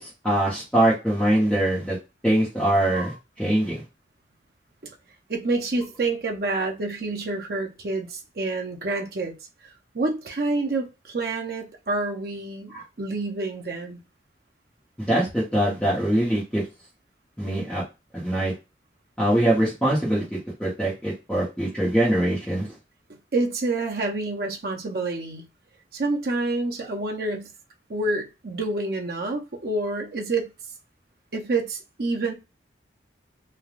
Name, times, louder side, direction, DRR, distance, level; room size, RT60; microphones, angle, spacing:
voice 1, 0.0-2.0 2.2-3.8 12.7-12.8 15.0-16.6 17.4-17.8 18.1-18.5 19.2-22.7, right 1 dB, 5° left, 0.9 m, -23 dB
voice 2, 5.3-9.4 9.9-14.0 23.3-25.5 25.9-27.5 27.9-30.5 31.3-32.3, right 2 dB, 55° right, 0.6 m, -28 dB
3.3 x 2.3 x 2.4 m
head